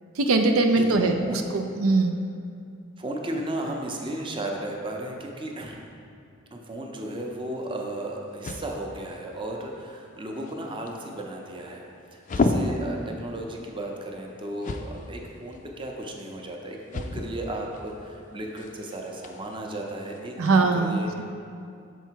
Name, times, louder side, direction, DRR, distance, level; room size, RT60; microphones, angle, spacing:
voice 1, 0.2-2.2 20.4-21.2, right 3 dB, 90° right, 5 dB, 0.5 m, -22 dB
voice 2, 3.0-5.8 6.5-21.2, right 1 dB, 25° right, 1 dB, 0.6 m, -35 dB
sound 1, 7.1-20.5, left 2 dB, 40° left, 0.4 m, -35 dB
6.7 x 4.5 x 4.6 m, 2.4 s
head